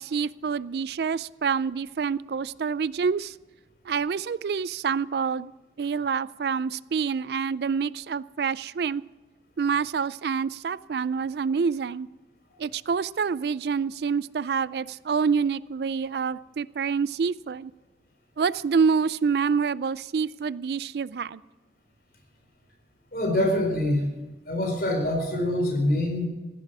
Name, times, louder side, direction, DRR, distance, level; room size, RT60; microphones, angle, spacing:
voice 1, 0.0-3.3 3.9-5.5 5.8-9.0 9.6-12.1 12.6-17.7 18.4-21.4, right 5 dB, 60° right, 19 dB, 0.4 m, -27 dB
voice 2, 23.1-24.1 24.5-26.2, left 1 dB, 55° left, 2 dB, 4.3 m, -25 dB
15.5 x 12.0 x 6.0 m, 1.2 s
head